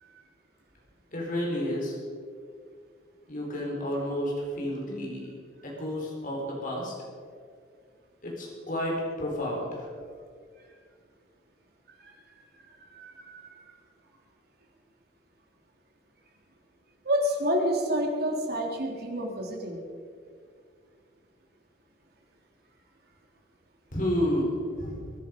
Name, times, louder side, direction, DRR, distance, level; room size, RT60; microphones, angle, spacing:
voice 1, 1.1-2.0 3.3-5.3 5.6-6.9 8.2-9.9 23.9-25.1, equal, 45° left, -2 dB, 4.3 m, -31 dB
voice 2, 12.8-13.5 17.0-19.8, equal, 55° right, 0 dB, 3.4 m, -29 dB
22.5 x 11.0 x 5.3 m, 2.1 s
head